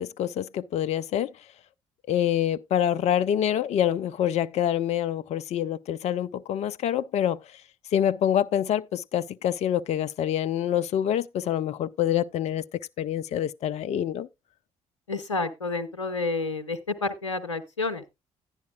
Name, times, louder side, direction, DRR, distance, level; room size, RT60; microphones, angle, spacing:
voice 1, 0.0-1.3 2.1-7.6 7.9-14.3, left 10 dB, 45° left, 0.4 m, -26 dB
voice 2, 15.1-18.0, left 3 dB, 90° left, 0.7 m, -30 dB
11.0 x 10.5 x 2.3 m
figure-of-eight pair, 45°, 15 cm